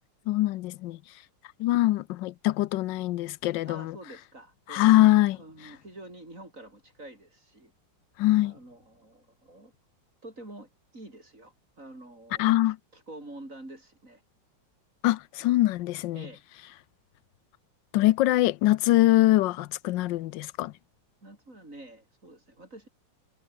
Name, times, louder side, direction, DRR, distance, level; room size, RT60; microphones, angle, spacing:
voice 1, 0.3-1.2 1.6-4.0 4.7-5.4 8.2-8.5 12.4-12.8 15.0-16.3 17.9-20.7, left 16 dB, 85° left, 1.3 m, -23 dB
voice 2, 3.7-4.9 5.4-7.7 8.4-9.7 10.2-14.2 16.1-16.4 21.2-22.9, right 1 dB, 45° right, 8.0 m, -47 dB
omnidirectional pair, 2.0 m